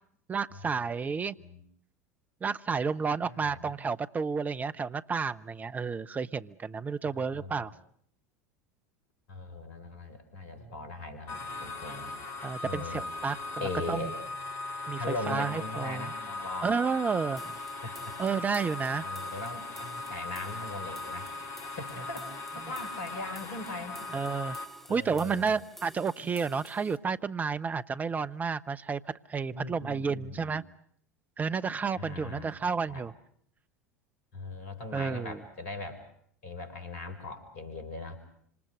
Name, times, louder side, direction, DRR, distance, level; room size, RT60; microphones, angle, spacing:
voice 1, 0.3-1.4 2.4-7.7 12.4-13.4 13.9-14.1 14.9-16.1 16.6-17.4 18.2-19.0 24.1-24.6 24.9-29.0 29.3-30.6 31.4-33.1 34.9-35.4, right 5 dB, 20° right, 12 dB, 1.0 m, -31 dB
voice 2, 3.2-3.7 7.0-7.7 9.3-12.1 12.6-13.0 13.6-14.1 15.0-16.7 17.8-18.2 19.0-21.3 21.6-24.1 24.5-24.6 24.9-25.6 29.5-30.6 31.9-32.5 32.9-33.1 34.3-36.0 36.4-38.2, left 3 dB, 60° left, 9 dB, 5.6 m, -40 dB
sound 1, 11.3-24.6, left 2 dB, 40° left, 4.5 m, -39 dB
sound 2, 17.4-27.0, equal, 5° left, 3.1 m, -53 dB
27.0 x 26.5 x 6.4 m, 0.67 s
figure-of-eight pair, 75°, 8 cm